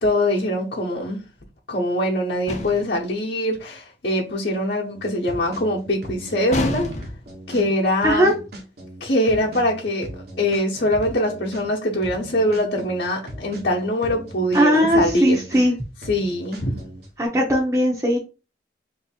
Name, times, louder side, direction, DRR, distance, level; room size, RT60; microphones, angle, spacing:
voice 1, 0.0-1.2 1.7-6.9 7.5-8.3 9.0-15.4 16.1-16.8, left 1 dB, 60° left, 0.9 m, -23 dB
sound 1, 2.5-3.0 6.5-7.3, left 2 dB, 40° left, 0.6 m, -28 dB
sound 2, 4.9-17.1, equal, 60° right, 1.1 m, -38 dB
voice 2, 8.0-8.3 14.5-15.7 17.2-18.2, equal, 15° right, 0.7 m, -18 dB
3.2 x 2.7 x 4.3 m
head